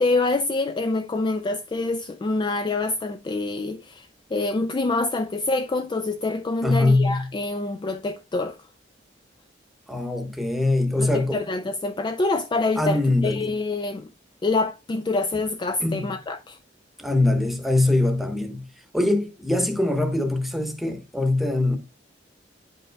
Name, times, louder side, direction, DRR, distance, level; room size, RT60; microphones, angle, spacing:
voice 1, 0.0-8.6 11.0-14.1 14.4-16.6, left 3 dB, 25° left, 0.3 m, -26 dB
voice 2, 6.6-7.3 9.9-11.4 12.8-13.5 15.8-16.1 17.0-18.7 18.9-21.8, left 2 dB, ahead, 1.0 m, -22 dB
9.6 x 5.4 x 2.2 m
head